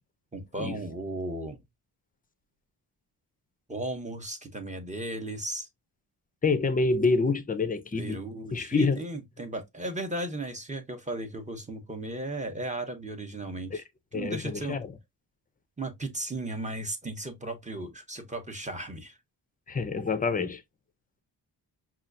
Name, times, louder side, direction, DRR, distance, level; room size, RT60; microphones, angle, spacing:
voice 1, 0.3-1.6 3.7-5.7 7.9-13.8 14.1-14.8 15.8-19.2, right 1 dB, 15° right, 0.8 m, -35 dB
voice 2, 6.4-8.2 8.5-9.0 13.7-13.8 14.1-14.9 19.7-20.6, left 4 dB, 20° left, 0.5 m, -27 dB
5.5 x 2.4 x 2.5 m
cardioid pair, 110°, 44 cm